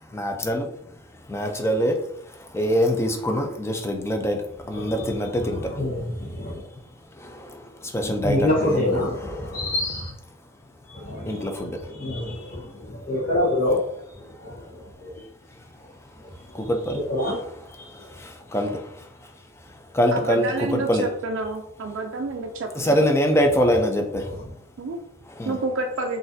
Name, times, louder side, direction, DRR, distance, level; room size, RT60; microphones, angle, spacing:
voice 1, 0.0-9.7 10.4-13.1 14.2-21.1 21.8-25.7, equal, 15° left, 0.4 m, -27 dB
voice 2, 5.8-6.6 8.2-10.1 10.9-11.5 12.0-15.3 16.1-16.6 17.1-17.3 17.7-18.1, left 1 dB, 45° left, 1.0 m, -27 dB
voice 3, 20.4-22.7 24.8-25.0 25.5-26.2, right 3 dB, 65° right, 0.4 m, -29 dB
4.0 x 2.5 x 2.6 m
head